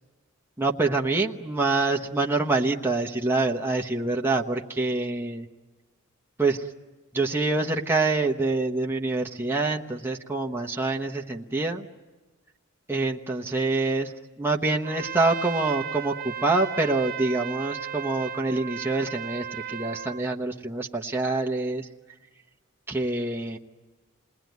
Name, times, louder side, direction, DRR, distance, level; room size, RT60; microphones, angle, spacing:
voice 1, 0.6-5.5 6.4-6.7 7.1-11.9 12.9-14.1 14.4-21.9 22.9-23.6, right 3 dB, 10° right, 0 dB, 1.0 m, -26 dB
Trumpet, 14.8-20.2, right 9 dB, 40° right, 0.8 m, -35 dB
28.5 x 20.0 x 9.3 m, 1.3 s
head